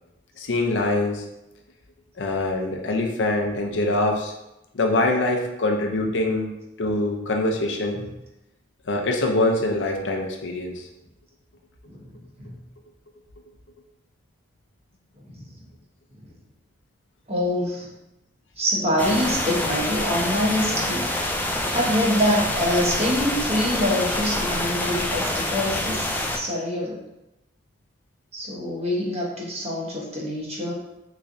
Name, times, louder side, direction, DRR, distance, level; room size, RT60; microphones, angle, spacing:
voice 1, 0.4-1.2 2.2-4.3 4.7-8.0 8.9-10.9, left 2 dB, 75° left, 1 dB, 0.5 m, -24 dB
voice 2, 11.9-12.6 15.3-15.5 16.1-16.2 17.3-17.9 18.6-21.1 21.7-27.0 28.3-30.7, left 1 dB, 35° right, -3 dB, 0.8 m, -25 dB
sound 1, 19.0-26.4, left 1 dB, 10° left, 0.3 m, -26 dB
3.7 x 3.1 x 2.5 m, 0.93 s
head